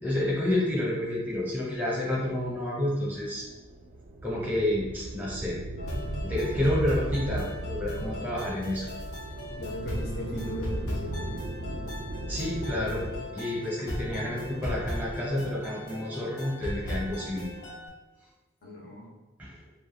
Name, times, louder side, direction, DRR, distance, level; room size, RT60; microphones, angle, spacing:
voice 1, 0.0-3.5 4.2-5.6 6.2-8.9 12.3-13.0 13.3-17.5 19.4-19.6, left 1 dB, 10° right, -6 dB, 0.7 m, -29 dB
sound 1, 3.0-13.3, right 1 dB, 45° right, 0.3 m, -37 dB
sound 2, 5.8-17.9, equal, 90° left, 0.7 m, -37 dB
voice 2, 9.6-11.4 18.6-19.1, equal, 50° left, -2 dB, 0.6 m, -37 dB
2.2 x 2.2 x 3.2 m, 1.1 s
head